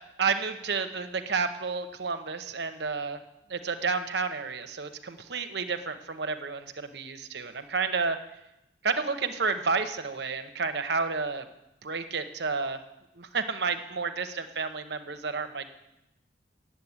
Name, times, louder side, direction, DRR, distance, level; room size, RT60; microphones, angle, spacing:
voice 1, 0.2-3.2 3.5-8.2 8.8-11.5 11.8-12.8 13.2-15.7, right 4 dB, 60° right, 9 dB, 0.8 m, -30 dB
9.5 x 7.5 x 8.5 m, 0.90 s
head